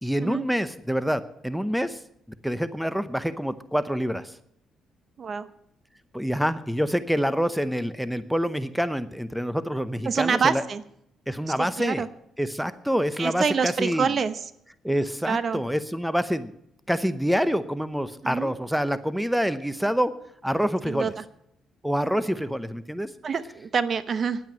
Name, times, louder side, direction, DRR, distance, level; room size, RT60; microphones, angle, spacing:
voice 1, 0.0-2.0 2.4-4.3 6.1-10.6 11.3-12.0 12.4-14.1 14.8-16.5 16.9-20.1 20.4-21.1 21.8-23.1, equal, ahead, 13 dB, 0.8 m, -26 dB
voice 2, 5.2-5.5 10.1-10.8 11.6-12.1 13.2-14.5 15.3-15.6 18.2-18.5 20.9-21.1 23.2-24.4, right 6 dB, 50° right, 14 dB, 0.9 m, -26 dB
10.5 x 9.1 x 8.9 m, 0.74 s
cardioid pair, 90°, 0 cm